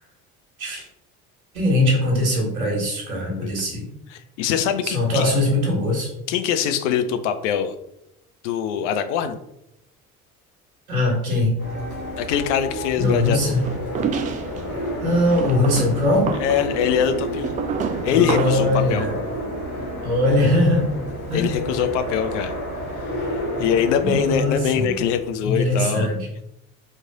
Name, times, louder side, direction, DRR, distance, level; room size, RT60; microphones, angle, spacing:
voice 1, 1.5-3.8 4.5-6.1 10.9-11.5 13.0-13.7 15.0-16.3 18.1-19.1 20.0-20.9 21.3-21.6 24.0-24.9 25.4-26.3, left 1 dB, 75° right, -1 dB, 1.5 m, -21 dB
voice 2, 4.1-5.3 6.3-7.7 8.4-9.4 12.2-13.5 16.4-17.6 18.0-19.1 21.3-22.5 23.0-26.2, left 8 dB, 55° left, 9 dB, 0.6 m, -23 dB
sound 1, 11.6-25.3, equal, 80° left, 1.3 m, -30 dB
sound 2, 13.6-14.6 15.3-18.7, right 7 dB, 20° right, 0.3 m, -29 dB
4.4 x 3.2 x 3.6 m, 0.81 s
figure-of-eight pair, 60°, 43 cm